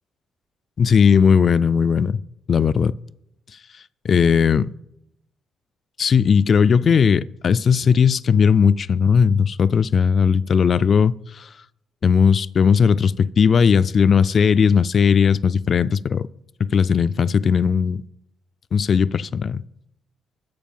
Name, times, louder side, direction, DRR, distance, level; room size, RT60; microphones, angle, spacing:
voice 1, 0.8-2.2 2.5-2.9 4.0-4.7 6.0-11.5 12.0-16.3 16.6-18.0 18.7-19.6, left 6 dB, 50° left, 0.3 m, -17 dB
13.0 x 4.5 x 7.2 m
cardioid pair, 90°, 0 cm